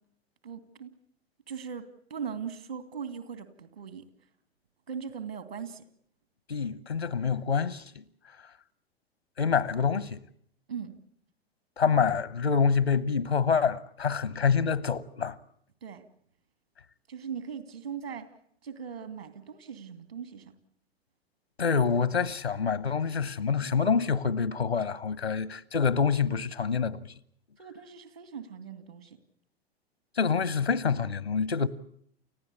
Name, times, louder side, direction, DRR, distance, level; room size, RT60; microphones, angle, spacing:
voice 1, 0.4-0.9 1.5-4.1 4.9-5.8 10.7-10.9 15.8-16.0 17.1-18.3 18.6-20.5 27.6-29.2, right 7 dB, 75° right, 2.8 m, -39 dB
voice 2, 6.5-7.9 9.4-10.2 11.8-15.4 21.6-27.0 30.2-31.7, left 6 dB, 85° left, 1.1 m, -26 dB
29.5 x 15.5 x 8.4 m
figure-of-eight pair, 90°, 31 cm